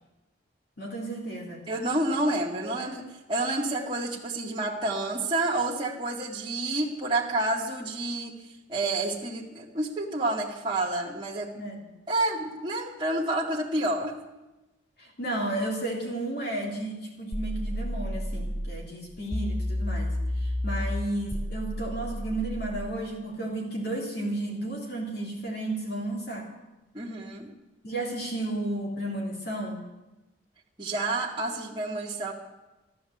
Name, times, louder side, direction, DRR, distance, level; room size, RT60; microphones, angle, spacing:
voice 1, 0.8-1.6 11.6-11.8 15.0-26.5 27.8-29.8, right 1 dB, 50° left, -1 dB, 3.3 m, -33 dB
voice 2, 1.7-8.4 8.7-11.6 12.1-14.1 26.9-27.5 30.8-32.3, right 2 dB, 25° right, -4 dB, 2.0 m, -29 dB
sound 1, 17.3-18.8 19.3-22.8, left 1 dB, 5° left, 0.6 m, -31 dB
14.5 x 12.5 x 8.0 m, 1.0 s
head